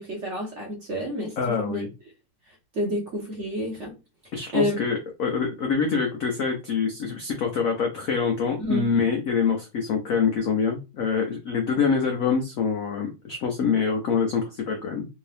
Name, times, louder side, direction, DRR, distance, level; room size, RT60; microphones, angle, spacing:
voice 1, 0.0-1.8 2.7-3.9 4.5-4.8 8.6-9.0, equal, 50° right, -1 dB, 0.9 m, -29 dB
voice 2, 1.4-1.9 4.3-15.1, left 5 dB, 85° left, 3 dB, 0.7 m, -25 dB
3.6 x 2.7 x 3.3 m, 0.28 s
omnidirectional pair, 2.3 m